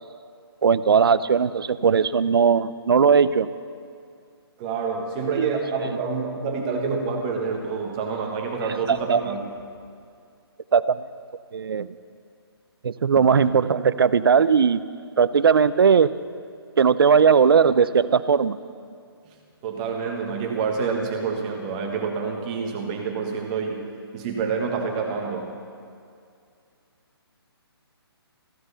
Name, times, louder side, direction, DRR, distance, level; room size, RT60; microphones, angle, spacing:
voice 1, 0.6-3.5 5.4-5.5 8.9-9.2 10.7-11.0 11.5-11.9 12.8-14.8 15.2-16.1 16.8-18.6, right 6 dB, 60° right, 15 dB, 0.7 m, -18 dB
voice 2, 4.6-9.4 13.2-13.3 19.6-23.9 24.1-25.5, right 5 dB, 20° right, 1 dB, 1.5 m, -27 dB
15.0 x 12.5 x 7.0 m, 2.3 s
hypercardioid pair, 170°, 14 cm